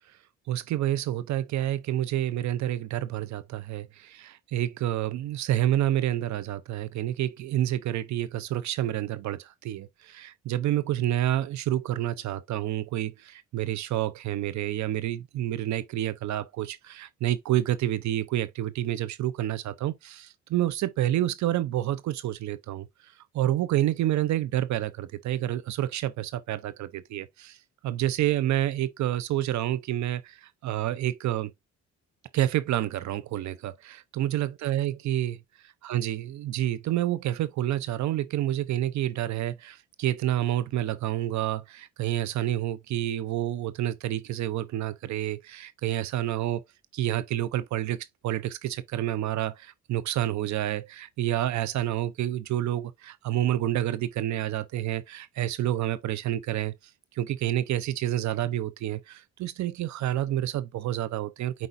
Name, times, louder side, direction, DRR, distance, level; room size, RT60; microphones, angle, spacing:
voice 1, 0.5-27.6 27.8-31.5 32.3-35.4 35.6-46.6 46.9-56.7 57.1-61.7, right 13 dB, 70° right, 0.5 m, -29 dB
8.1 x 4.8 x 2.5 m
cardioid pair, 90°, 30 cm